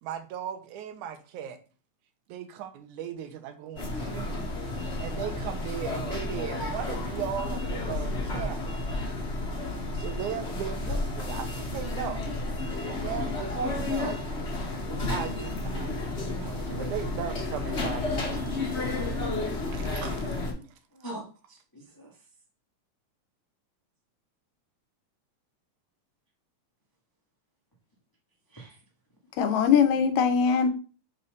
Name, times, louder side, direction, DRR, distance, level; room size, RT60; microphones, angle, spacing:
voice 1, 0.0-1.6 2.3-4.5 5.0-8.8 9.9-12.3 12.6-14.2 15.1-18.5 19.7-20.7, right 9 dB, 90° right, 2.3 m, -37 dB
sound 1, 3.8-20.5, left 2 dB, 40° left, 0.9 m, -32 dB
voice 2, 16.7-17.3 20.9-22.1 28.5-28.8, right 1 dB, 20° left, 0.5 m, -42 dB
voice 3, 29.4-30.7, left 7 dB, 75° left, 2.0 m, -21 dB
5.6 x 4.2 x 5.0 m
omnidirectional pair, 3.4 m